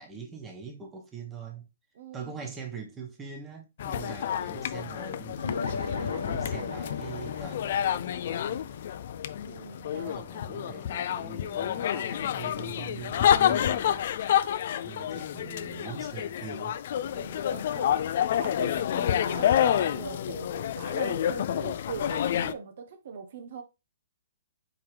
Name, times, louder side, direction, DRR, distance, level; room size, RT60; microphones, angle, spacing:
voice 1, 0.0-1.7 2.1-8.8 9.9-14.4 14.8-16.8, right 5 dB, 15° right, 1.2 m, -43 dB
voice 2, 1.9-2.5 9.4-10.2 17.1-18.0 18.3-23.6, right 6 dB, 60° right, 0.6 m, -41 dB
sound 1, 3.8-22.5, left 10 dB, 55° left, 0.4 m, -29 dB
sound 2, 5.4-10.2, left 4 dB, 90° left, 1.0 m, -38 dB
4.6 x 3.5 x 3.2 m
hypercardioid pair, 140°, 0 cm